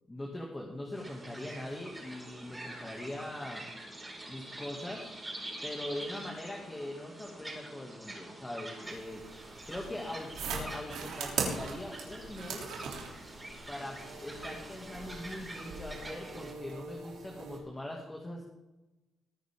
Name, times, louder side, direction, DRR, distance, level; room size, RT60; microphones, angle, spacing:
voice 1, 0.1-3.7 4.3-5.1 5.6-9.2 9.7-12.7 13.7-18.4, left 1 dB, 15° left, -1 dB, 2.5 m, -41 dB
sound 1, 0.9-16.5, right 1 dB, 15° right, 5.1 m, -46 dB
sound 2, 8.8-17.6, right 5 dB, 80° right, 3.3 m, -41 dB
21.0 x 9.4 x 3.8 m, 1.0 s
cardioid pair, 90°, 0 cm